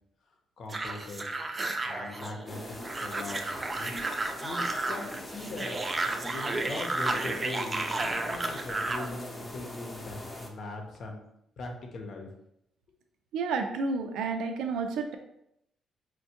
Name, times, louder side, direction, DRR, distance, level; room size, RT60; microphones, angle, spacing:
voice 1, 0.6-1.4 1.8-4.0 4.4-5.8 6.3-11.2 11.6-12.3, left 3 dB, 60° left, 3 dB, 0.7 m, -40 dB
sound 1, 0.7-9.1, right 2 dB, 25° right, 0.4 m, -33 dB
sound 2, 2.5-10.5, left 1 dB, 25° left, 0.6 m, -42 dB
voice 2, 13.3-15.2, right 4 dB, 85° right, 5 dB, 0.4 m, -30 dB
4.4 x 2.2 x 2.8 m, 0.78 s
cardioid pair, 90°, 0 cm